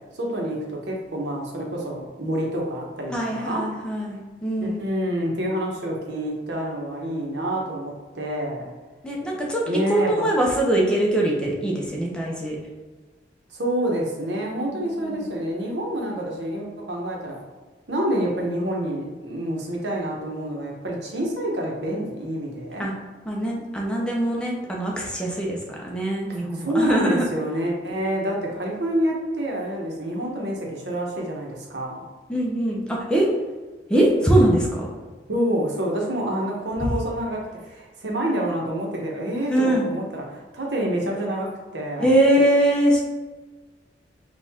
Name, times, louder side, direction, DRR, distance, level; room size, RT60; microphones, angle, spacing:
voice 1, 0.1-3.7 4.6-8.7 9.7-10.3 13.5-17.4 17.9-22.9 26.3-32.1 35.3-42.1, right 1 dB, 70° right, -1 dB, 0.9 m, -27 dB
voice 2, 3.1-4.8 9.0-9.6 9.9-12.6 15.0-15.3 22.8-22.9 23.3-27.2 32.3-33.3 33.9-34.9 36.8-36.9 39.5-39.9 42.0-43.0, right 1 dB, 5° left, -3 dB, 0.6 m, -22 dB
4.5 x 2.4 x 3.6 m, 1.3 s
head